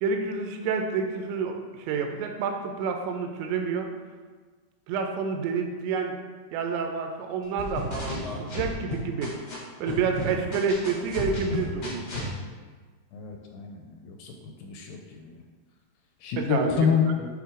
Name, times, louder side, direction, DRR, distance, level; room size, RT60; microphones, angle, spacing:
voice 1, 0.0-3.9 4.9-6.2 6.5-9.4 9.8-12.0 16.4-17.2, right 5 dB, 90° right, 4 dB, 3.0 m, -29 dB
sound 1, 7.6-9.5 9.9-12.3, left 1 dB, 60° left, 1.0 m, -33 dB
voice 2, 13.1-13.8 14.1-14.3 14.6-15.0 16.2-17.3, left 6 dB, 80° left, 2 dB, 2.5 m, -26 dB
9.2 x 3.8 x 3.7 m, 1.4 s
omnidirectional pair, 5.0 m